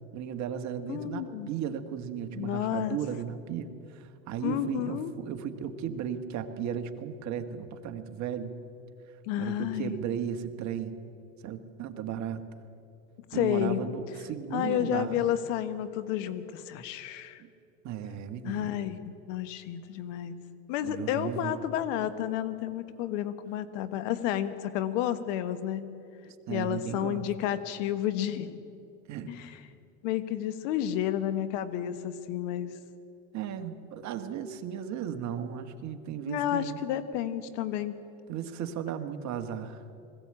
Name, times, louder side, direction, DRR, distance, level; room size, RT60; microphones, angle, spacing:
voice 1, 0.1-8.5 9.4-11.0 11.4-12.4 13.3-15.2 17.4-17.5 17.8-18.7 20.8-21.6 26.5-27.2 29.0-29.3 33.3-36.8 38.3-39.8, right 8 dB, 45° right, 7 dB, 1.5 m, -35 dB
voice 2, 0.9-1.5 2.3-3.0 4.4-5.1 9.3-10.0 13.3-13.8 14.5-17.4 18.4-20.4 20.7-25.9 26.5-28.6 29.3-29.6 30.0-32.7 36.3-37.9, left 11 dB, 70° left, 13 dB, 1.4 m, -31 dB
20.5 x 15.5 x 8.8 m, 2.6 s
supercardioid pair, 125°, 39 cm